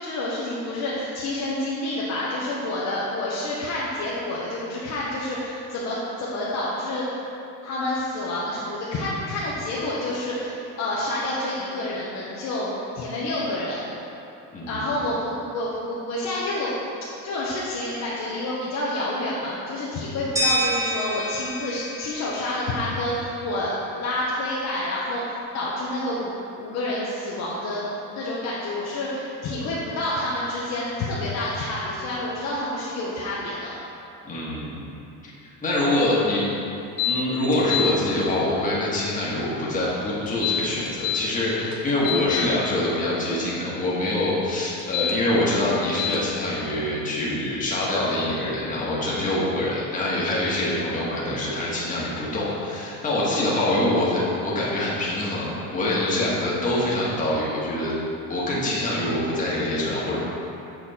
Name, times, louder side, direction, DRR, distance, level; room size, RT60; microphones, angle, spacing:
voice 1, 0.0-7.0 7.6-12.7 12.9-13.8 14.7-16.8 17.2-27.9 28.2-33.7, left 1 dB, 50° left, -6 dB, 1.0 m, -28 dB
voice 2, 14.5-14.9 34.2-34.9 35.4-36.5 37.0-58.0 58.3-60.2, left 1 dB, 20° left, -7 dB, 1.6 m, -25 dB
sound 1, 20.4-23.3, equal, 10° right, 1.0 m, -28 dB
sound 2, 37.0-37.2 37.5-37.9 40.3-41.2 41.7-42.5 44.8-45.1 46.0-46.2, left 10 dB, 80° left, 1.2 m, -26 dB
8.0 x 4.5 x 4.3 m, 2.8 s
cardioid pair, 145°, 36 cm